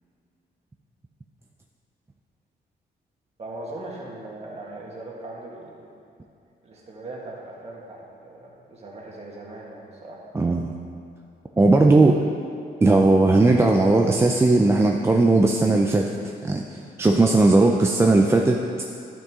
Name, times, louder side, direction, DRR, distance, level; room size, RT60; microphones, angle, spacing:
voice 1, 3.4-5.9 6.6-10.2, right 2 dB, 35° right, -3 dB, 1.8 m, -39 dB
voice 2, 10.3-10.7 11.6-12.2 12.8-16.1 16.4-16.6 17.0-18.6, right 2 dB, 15° right, 1 dB, 0.4 m, -17 dB
12.0 x 5.9 x 3.7 m, 2.5 s
cardioid pair, 125°, 18 cm